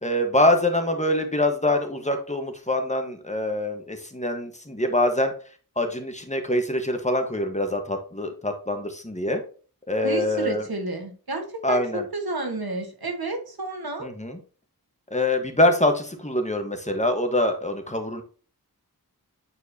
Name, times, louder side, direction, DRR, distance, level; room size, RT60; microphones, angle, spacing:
voice 1, 0.0-5.3 5.8-9.4 9.9-10.6 11.6-12.0 14.0-14.4 15.1-18.2, left 1 dB, 20° left, 5 dB, 1.4 m, -24 dB
voice 2, 10.0-14.1, right 2 dB, 85° right, 3 dB, 1.8 m, -31 dB
9.0 x 4.6 x 2.8 m, 0.39 s
wide cardioid pair, 60°, 36 cm